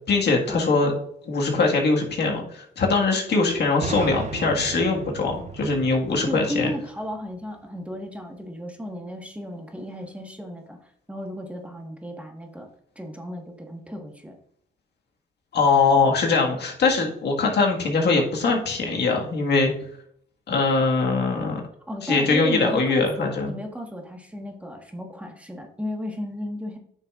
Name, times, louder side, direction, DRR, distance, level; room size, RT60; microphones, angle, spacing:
voice 1, 0.1-0.9 1.2-6.7 15.5-19.7 20.5-21.6 22.0-23.5, left 3 dB, 55° left, 0 dB, 1.8 m, -22 dB
sound 1, 3.8-7.5, right 5 dB, 35° right, 0.7 m, -36 dB
voice 2, 6.3-12.7 12.9-14.4 21.9-26.8, equal, 5° right, 2 dB, 1.5 m, -34 dB
9.1 x 6.5 x 2.5 m, 0.66 s
cardioid pair, 90°, 20 cm